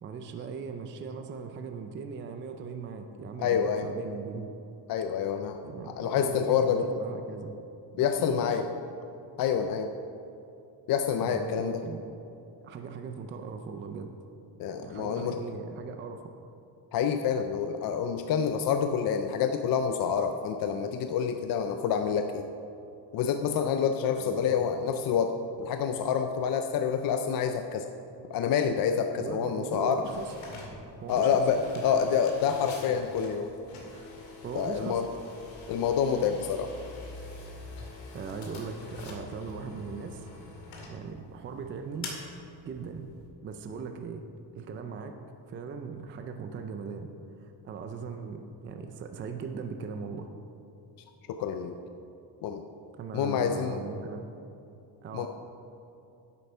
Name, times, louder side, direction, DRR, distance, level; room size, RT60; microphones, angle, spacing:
voice 1, 0.0-4.5 5.6-7.5 7.9-8.5 11.2-12.0 12.6-14.2 14.8-16.3 24.1-24.6 29.2-30.3 31.0-31.4 33.9-34.1 34.4-35.0 38.1-40.3 40.9-42.1 42.6-43.1 43.4-44.2 44.6-45.2 45.5-47.1 47.4-50.3 53.0-54.3 55.0-55.3, right 5 dB, 25° right, 6 dB, 0.4 m, -39 dB
voice 2, 3.4-3.9 4.9-5.6 5.9-6.8 8.0-8.7 9.4-9.9 10.9-11.8 14.6-15.4 16.9-22.4 23.1-27.9 28.3-30.0 31.1-33.5 34.5-35.0 35.7-36.7 51.3-51.7 52.4-52.6 53.1-53.8 55.1-55.3, left 7 dB, 50° left, 6 dB, 0.5 m, -27 dB
sound 1, 30.0-43.3, left 3 dB, 75° left, 2.3 m, -45 dB
10.5 x 8.4 x 5.4 m, 2.7 s
cardioid pair, 175°, 46 cm